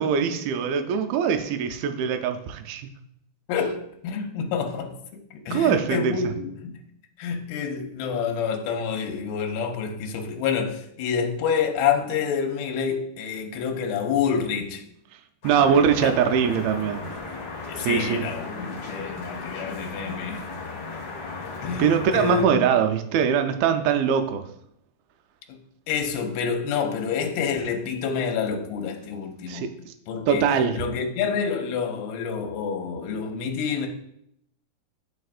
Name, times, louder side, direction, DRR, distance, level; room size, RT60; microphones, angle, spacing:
voice 1, 0.0-2.9 5.5-6.3 15.4-17.0 17.8-18.3 21.8-24.4 29.5-29.9 30.3-30.9, right 7 dB, 80° right, 2.2 m, -22 dB
voice 2, 3.5-4.9 5.5-6.8 7.2-14.8 16.0-16.1 17.7-20.4 21.6-22.4 25.5-25.6 25.9-29.7 30.1-30.4 30.7-33.9, left 6 dB, 85° left, 2.6 m, -28 dB
sound 1, 15.4-22.4, left 3 dB, 55° left, 1.6 m, -36 dB
11.0 x 4.1 x 2.4 m
omnidirectional pair, 4.6 m